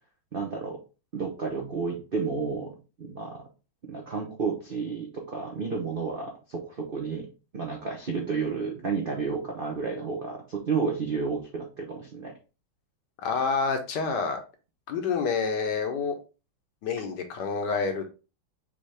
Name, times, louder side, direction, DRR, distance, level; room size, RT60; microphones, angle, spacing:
voice 1, 0.3-0.8 1.1-2.7 3.0-3.4 3.9-7.3 7.5-12.3, right 5 dB, 60° right, 0 dB, 0.5 m, -31 dB
voice 2, 13.2-14.4 14.9-16.1 16.8-18.1, left 5 dB, 65° left, 6 dB, 1.3 m, -28 dB
5.4 x 2.9 x 3.2 m, 0.32 s
omnidirectional pair, 2.2 m